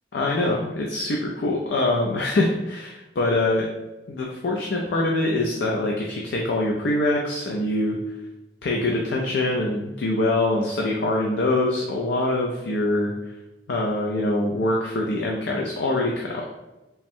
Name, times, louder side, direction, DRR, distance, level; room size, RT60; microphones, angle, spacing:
voice 1, 0.1-3.7 4.1-8.0 8.6-13.1 13.7-16.5, left 2 dB, 65° left, -1 dB, 0.4 m, -24 dB
3.4 x 2.1 x 4.3 m, 1.0 s
head